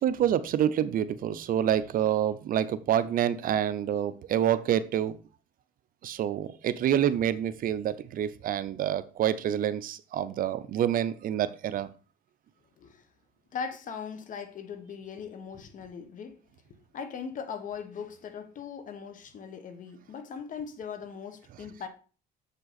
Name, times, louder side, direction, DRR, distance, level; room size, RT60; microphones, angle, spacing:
voice 1, 0.0-5.1 6.0-11.9, right 10 dB, 55° right, 0.6 m, -27 dB
voice 2, 13.5-16.4 16.9-21.9, left 6 dB, 50° left, 1.3 m, -39 dB
7.3 x 5.3 x 4.0 m
cardioid pair, 110°, 17 cm